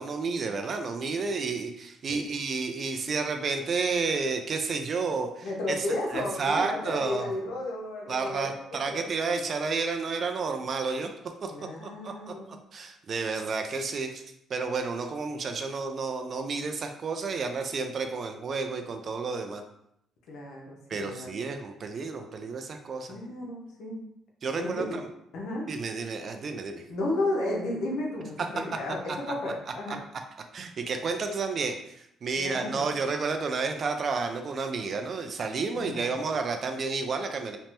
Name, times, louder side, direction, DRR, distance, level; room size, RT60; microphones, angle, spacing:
voice 1, 0.0-5.9 6.1-7.3 8.1-11.1 11.4-12.3 12.7-14.2 14.5-19.6 20.9-23.2 24.4-25.0 25.7-26.9 29.9-30.0 30.5-37.6, right 4 dB, 50° right, 5 dB, 0.4 m, -31 dB
voice 2, 5.4-8.5 8.9-9.1 11.5-12.5 20.3-21.5 23.1-24.0 24.6-25.0 25.3-25.7 26.9-29.0 29.3-30.0 32.4-32.9 35.7-36.2, left 2 dB, 80° left, 0 dB, 0.7 m, -33 dB
3.2 x 2.0 x 2.9 m, 0.76 s
cardioid pair, 90°, 0 cm